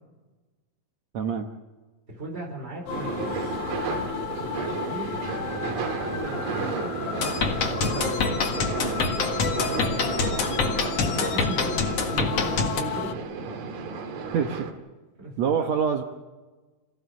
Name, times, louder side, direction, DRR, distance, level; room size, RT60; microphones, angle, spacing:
voice 1, 1.1-1.5 13.5-13.6 14.3-14.7 15.4-16.0, right 7 dB, 65° right, 4 dB, 2.0 m, -25 dB
voice 2, 2.1-3.3 3.8-5.2 5.8-10.4 11.0-11.7 12.0-13.2 15.2-15.7, right 1 dB, 15° right, 1 dB, 4.7 m, -38 dB
sound 1, 2.9-13.2, left 9 dB, 70° left, 2.2 m, -34 dB
sound 2, 2.9-14.7, right 4 dB, 80° right, 3.4 m, -32 dB
sound 3, 7.2-12.8, left 5 dB, 50° left, 2.5 m, -26 dB
28.0 x 16.0 x 7.1 m, 1.3 s
omnidirectional pair, 3.9 m